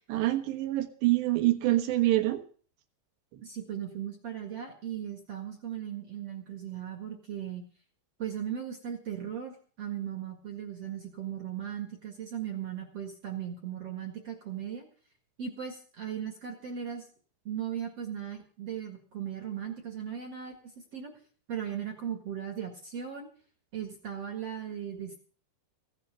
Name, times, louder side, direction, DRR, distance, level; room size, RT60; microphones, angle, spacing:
voice 1, 0.1-2.4, right 16 dB, 75° right, 8 dB, 3.4 m, -26 dB
voice 2, 3.4-7.6 8.2-14.9 15.4-17.0 17.5-20.6 20.9-21.1 21.5-23.3 23.7-25.2, right 9 dB, 50° right, 4 dB, 2.1 m, -37 dB
16.0 x 9.8 x 6.7 m, 0.43 s
omnidirectional pair, 5.2 m